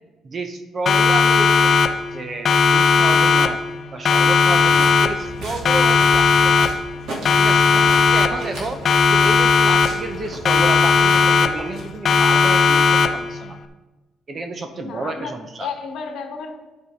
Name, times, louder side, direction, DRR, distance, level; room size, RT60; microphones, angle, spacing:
voice 1, 0.2-1.8 2.1-3.6 3.9-6.7 7.4-7.7 8.1-8.8 9.1-13.6 14.3-15.7, right 3 dB, 30° right, 7 dB, 0.9 m, -30 dB
Siren, 0.9-2.2 2.5-3.8 4.1-5.4 5.7-7.0 7.3-8.6 8.9-10.2 10.5-11.8 12.1-13.4, left 5 dB, 40° left, 0.6 m, -16 dB
sound 1, 4.5-12.2, right 1 dB, 55° right, 2.6 m, -36 dB
voice 2, 14.8-15.3 15.6-16.7, left 5 dB, 65° left, 4 dB, 1.4 m, -32 dB
11.5 x 4.7 x 5.0 m, 1.1 s
cardioid pair, 155°, 0 cm